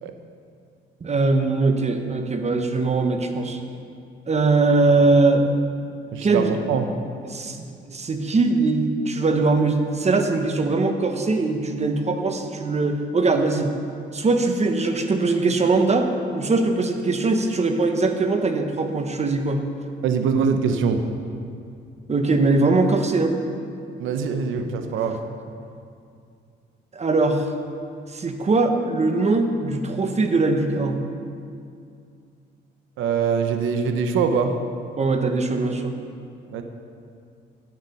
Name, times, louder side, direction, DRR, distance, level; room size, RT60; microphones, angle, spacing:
voice 1, 1.0-3.6 4.3-5.6 6.2-6.6 7.2-7.6 7.9-13.7 14.1-19.6 22.1-23.3 26.9-27.5 28.1-31.0 35.0-35.9, right 3 dB, 35° right, 6 dB, 1.1 m, -21 dB
voice 2, 6.1-6.9 20.0-21.0 24.0-25.2 33.0-34.5 36.5-36.6, right 6 dB, 85° right, 7 dB, 0.8 m, -23 dB
10.5 x 8.0 x 5.5 m, 2.4 s
cardioid pair, 90°, 20 cm